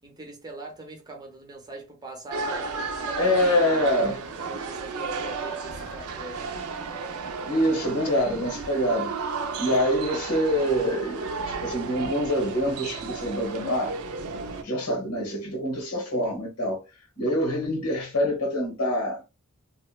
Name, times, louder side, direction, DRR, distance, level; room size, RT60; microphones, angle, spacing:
voice 1, 0.0-6.5, right 2 dB, 20° right, 0.6 m, -42 dB
sound 1, 2.3-14.6, right 4 dB, 70° right, 0.5 m, -33 dB
voice 2, 3.2-4.2 7.5-9.1 9.6-14.0 14.6-16.8 17.2-19.2, equal, 85° left, 1.1 m, -25 dB
2.7 x 2.1 x 2.2 m
head